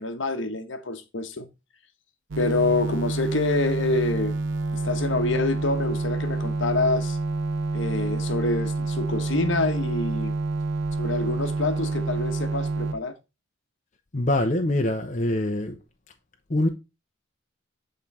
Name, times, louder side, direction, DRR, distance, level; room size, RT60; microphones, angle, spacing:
voice 1, 0.0-1.5 2.4-4.3 4.7-7.2 7.7-10.4 11.0-13.2, left 2 dB, 65° left, 1.1 m, -26 dB
sound 1, 2.3-12.9, right 3 dB, 65° right, 0.7 m, -28 dB
voice 2, 14.1-15.8 16.5-16.7, left 1 dB, 35° left, 0.8 m, -24 dB
8.1 x 3.9 x 4.1 m
head